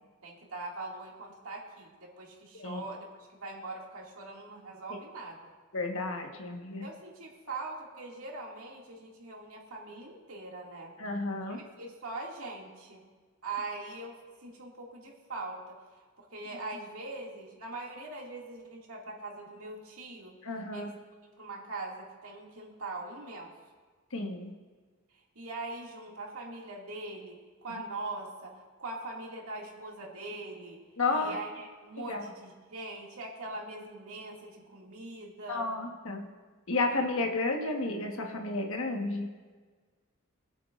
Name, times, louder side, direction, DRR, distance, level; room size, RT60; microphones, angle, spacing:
voice 1, 0.0-5.4 6.8-10.9 11.5-13.2 13.4-15.8 16.2-20.4 20.7-20.9 21.4-23.5 25.4-30.8 31.1-35.7, right 2 dB, 75° right, -1 dB, 2.3 m, -42 dB
voice 2, 5.7-6.8 11.0-11.6 20.4-20.9 24.1-24.5 27.7-27.8 31.0-31.4 32.0-32.3 35.5-36.3 36.7-39.3, left 3 dB, 65° left, 3 dB, 1.4 m, -32 dB
25.0 x 8.4 x 2.5 m, 1.5 s
head